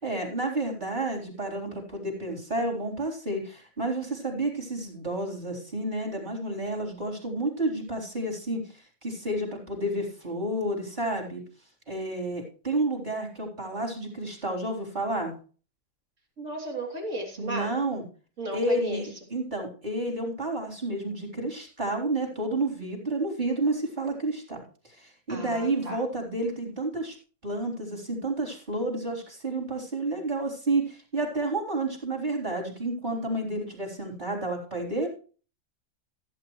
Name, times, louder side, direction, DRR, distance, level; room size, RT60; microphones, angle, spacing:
voice 1, 0.0-11.4 11.9-15.3 17.4-18.0 18.5-24.6 24.8-27.2 27.4-35.1, right 2 dB, 35° right, 0 dB, 4.0 m, -30 dB
voice 2, 16.4-17.7 18.4-19.0 25.3-26.0, right 1 dB, 70° right, 0 dB, 3.5 m, -34 dB
15.5 x 8.9 x 3.1 m, 0.39 s
omnidirectional pair, 1.3 m